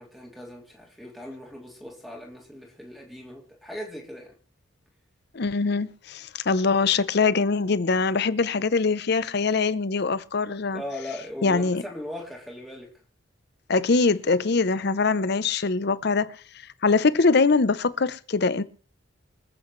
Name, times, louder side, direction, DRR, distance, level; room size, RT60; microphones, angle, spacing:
voice 1, 0.0-4.3 10.7-12.9, left 1 dB, ahead, 2.4 m, -39 dB
voice 2, 5.3-10.8 11.4-11.8 13.7-16.3 16.8-18.6, left 4 dB, 55° left, 0.7 m, -23 dB
25.5 x 8.5 x 3.1 m
head